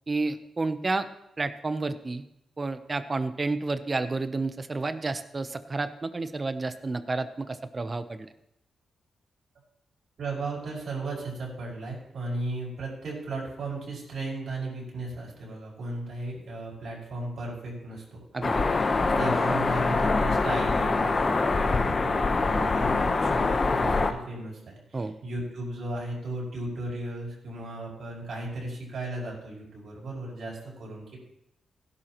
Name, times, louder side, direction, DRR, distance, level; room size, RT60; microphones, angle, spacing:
voice 1, 0.1-1.1 1.4-2.2 2.6-8.3 18.3-18.6 24.9-25.1, right 3 dB, 30° right, 11 dB, 0.8 m, -30 dB
voice 2, 10.2-18.2 18.8-31.2, right 2 dB, 65° right, -4 dB, 5.5 m, -35 dB
sound 1, 18.4-24.1, left 3 dB, 35° left, 1.0 m, -24 dB
16.5 x 11.5 x 3.1 m, 0.81 s
cardioid pair, 105°, 0 cm